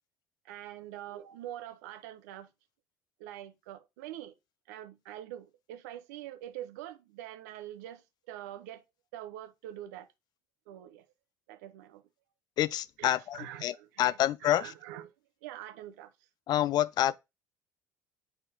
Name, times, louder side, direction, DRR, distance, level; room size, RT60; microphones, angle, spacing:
voice 1, 0.4-2.5 3.2-4.3 4.7-8.0 8.3-8.8 9.1-10.1 10.7-11.0 11.5-12.0 13.0-14.1 14.4-15.0 15.4-16.1, right 12 dB, 70° right, 0.8 m, -44 dB
voice 2, 12.6-14.7 16.5-17.2, left 12 dB, 45° left, 0.4 m, -28 dB
8.9 x 4.1 x 2.7 m
figure-of-eight pair, 60°, 9 cm